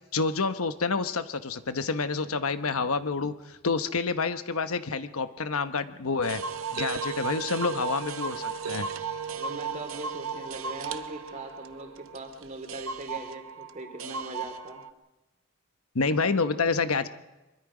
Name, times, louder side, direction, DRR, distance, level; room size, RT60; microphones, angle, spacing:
voice 1, 0.1-6.4 6.7-8.9 15.9-17.1, left 4 dB, 75° left, 10 dB, 1.0 m, -28 dB
sound 1, 6.2-14.9, right 5 dB, 65° right, 0.8 m, -35 dB
voice 2, 9.3-14.8, right 2 dB, 35° right, 5 dB, 2.7 m, -41 dB
24.0 x 22.0 x 5.0 m, 1.1 s
head